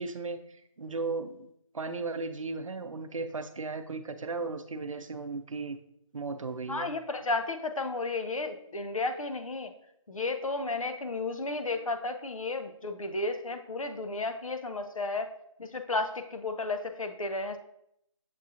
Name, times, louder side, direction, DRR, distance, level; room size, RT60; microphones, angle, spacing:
voice 1, 0.0-5.8 6.1-6.9, right 3 dB, 75° right, 10 dB, 0.5 m, -36 dB
voice 2, 6.7-9.7 10.1-15.3 15.6-17.6, left 3 dB, 90° left, 6 dB, 0.7 m, -33 dB
7.1 x 2.7 x 2.5 m, 0.74 s
figure-of-eight pair, 175°, 17 cm